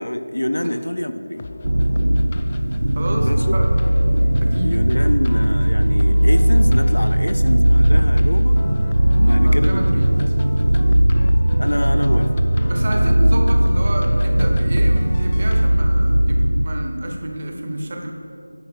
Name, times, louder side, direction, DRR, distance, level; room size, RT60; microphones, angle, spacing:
voice 1, 0.0-1.4 3.2-3.6 4.6-8.6 9.3-10.1 11.6-12.3 12.9-13.2, left 1 dB, 90° left, 9 dB, 0.6 m, -26 dB
sound 1, 1.4-15.7, left 3 dB, 25° left, 0.3 m, -36 dB
sound 2, 1.6-16.7, right 1 dB, 85° right, 0.4 m, -17 dB
voice 2, 2.9-3.8 4.4-4.8 9.1-10.1 12.7-18.1, right 1 dB, 35° right, 2 dB, 0.9 m, -29 dB
9.9 x 4.5 x 6.5 m, 2.6 s
figure-of-eight pair, 175°, 0 cm